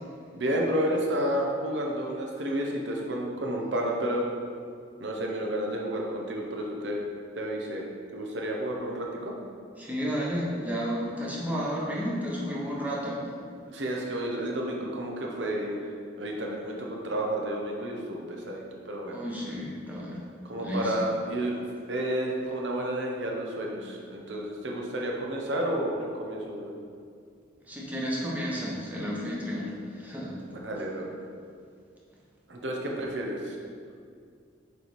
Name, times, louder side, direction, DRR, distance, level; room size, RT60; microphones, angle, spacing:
voice 1, 0.3-4.3 5.0-7.0 7.3-7.8 8.1-9.3 13.7-19.2 20.5-21.6 21.9-26.7 30.6-31.1 32.5-33.6, right 1 dB, 70° right, -1 dB, 0.9 m, -31 dB
voice 2, 9.8-13.2 19.1-20.2 20.6-21.1 27.6-30.4, equal, 10° right, -5 dB, 1.0 m, -32 dB
6.8 x 3.5 x 4.6 m, 2.2 s
head